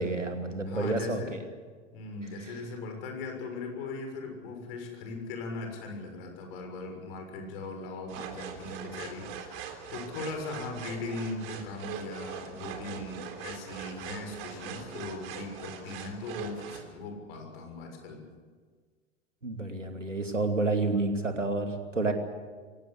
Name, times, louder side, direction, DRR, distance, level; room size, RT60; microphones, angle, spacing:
voice 1, 0.0-1.4 19.4-22.1, right 3 dB, 90° right, 5 dB, 2.7 m, -29 dB
voice 2, 0.6-1.4 1.9-18.2, left 3 dB, 50° left, 4 dB, 6.6 m, -39 dB
sound 1, 8.1-16.9, right 7 dB, 50° right, 3.7 m, -42 dB
24.0 x 18.0 x 8.4 m, 1.5 s
figure-of-eight pair, 90°, 36 cm